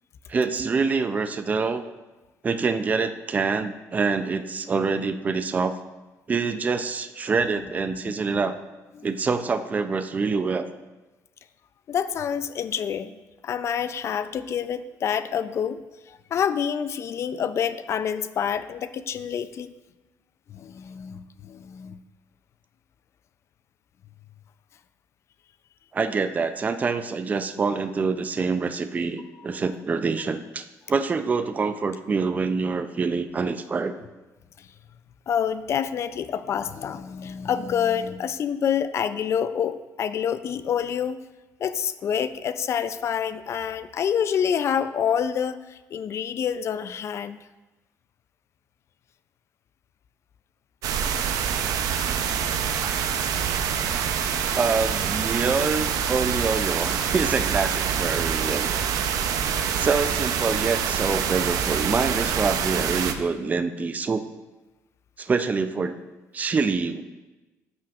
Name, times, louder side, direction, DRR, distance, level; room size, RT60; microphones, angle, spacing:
voice 1, 0.3-1.8 2.4-5.8 6.3-8.6 9.0-10.7 25.9-33.9 54.6-58.7 59.7-64.2 65.2-65.9 66.3-67.0, right 4 dB, 25° right, 9 dB, 0.4 m, -26 dB
voice 2, 11.9-13.1 13.4-15.8 16.1-19.7 20.5-22.0 34.6-34.7 35.3-41.2 41.6-47.4 52.8-52.9 62.6-62.8 63.2-63.3, left 8 dB, 50° left, 13 dB, 0.4 m, -27 dB
sound 1, 50.8-63.1, right 8 dB, 75° right, 0.6 m, -26 dB
12.5 x 6.0 x 2.4 m, 1.1 s
cardioid pair, 110°, 6 cm